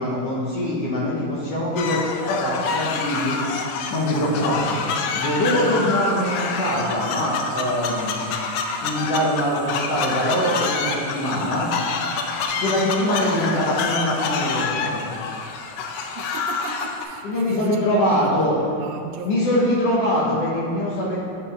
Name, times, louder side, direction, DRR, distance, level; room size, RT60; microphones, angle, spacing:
voice 1, 0.0-2.0 2.3-3.4 3.9-4.8 5.1-8.2 8.8-11.7 12.6-15.0 17.2-18.5 19.2-21.2, equal, 65° left, -5 dB, 1.7 m, -23 dB
sound 1, 1.8-17.0, left 5 dB, 85° left, 1.4 m, -27 dB
voice 2, 12.5-12.9 16.1-19.4, right 5 dB, 80° right, 4 dB, 1.9 m, -37 dB
9.3 x 3.8 x 3.4 m, 2.5 s
omnidirectional pair, 3.5 m